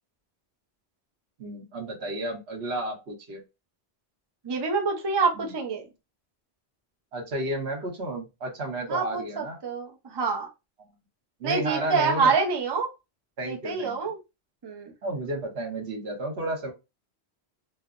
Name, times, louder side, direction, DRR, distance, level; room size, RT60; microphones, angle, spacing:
voice 1, 1.4-3.4 5.3-5.5 7.1-9.6 11.4-12.4 13.4-14.0 15.0-16.7, right 1 dB, 75° right, 1.2 m, -32 dB
voice 2, 4.4-5.9 8.9-10.5 11.4-12.9 13.4-14.2 14.6-14.9, right 4 dB, 30° right, 0.5 m, -26 dB
3.2 x 2.0 x 2.4 m
omnidirectional pair, 1.1 m